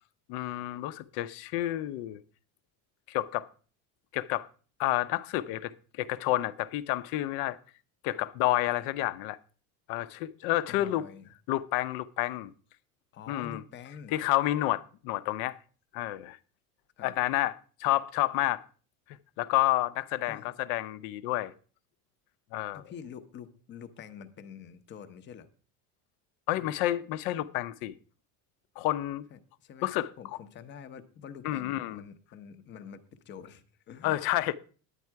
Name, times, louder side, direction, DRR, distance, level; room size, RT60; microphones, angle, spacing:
voice 1, 0.3-2.2 3.1-3.5 4.1-4.5 4.8-7.6 8.0-9.4 9.9-11.0 11.5-12.5 13.3-13.6 14.1-15.6 15.9-16.4 17.0-17.5 17.8-18.6 19.4-21.5 22.5-22.8 26.5-28.0 28.8-29.3 29.8-30.1 31.4-32.0 34.0-34.5, left 15 dB, 65° left, 0.7 m, -29 dB
voice 2, 10.7-11.3 13.1-14.1 17.0-17.1 20.3-20.5 22.7-25.5 26.6-26.7 29.3-29.9 30.2-34.2, left 7 dB, 30° left, 0.8 m, -47 dB
10.0 x 9.7 x 4.6 m
cardioid pair, 180°, 39 cm